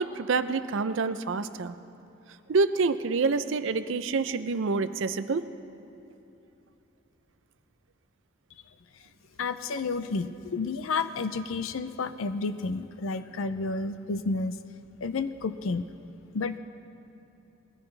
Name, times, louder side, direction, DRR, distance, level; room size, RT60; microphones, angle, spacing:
voice 1, 0.0-1.8 2.5-5.5, right 4 dB, 70° right, 12 dB, 0.5 m, -27 dB
voice 2, 9.4-14.6 15.0-15.8 16.3-16.6, left 4 dB, 85° left, 12 dB, 0.5 m, -31 dB
21.0 x 14.5 x 3.3 m, 2.9 s
head